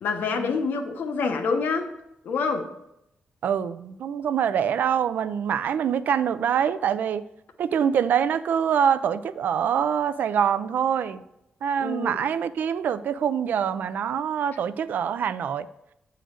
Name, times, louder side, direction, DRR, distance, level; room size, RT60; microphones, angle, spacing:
voice 1, 0.0-1.9 2.2-2.7 11.8-12.2, left 4 dB, 75° left, 6 dB, 0.9 m, -26 dB
voice 2, 3.4-7.2 7.6-11.2 11.6-15.7, right 8 dB, 70° right, 14 dB, 0.4 m, -25 dB
7.9 x 3.8 x 6.3 m, 0.83 s
wide cardioid pair, 160°, 3 cm